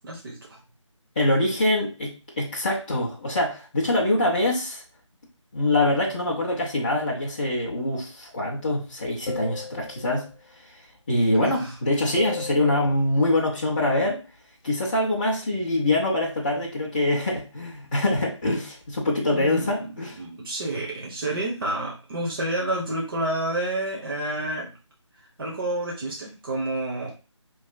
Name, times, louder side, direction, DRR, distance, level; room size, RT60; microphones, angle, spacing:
voice 1, 0.0-0.6 11.4-11.7 19.3-24.7 25.4-27.1, right 1 dB, 45° right, -3 dB, 1.0 m, -29 dB
voice 2, 1.2-4.8 5.5-10.3 11.1-14.2 14.6-20.1, left 1 dB, 20° left, -6 dB, 0.6 m, -24 dB
sound 1, 9.3-10.3 12.2-12.9, left 5 dB, 65° left, 0.4 m, -36 dB
4.9 x 3.1 x 2.3 m, 0.32 s
figure-of-eight pair, 160°, 16 cm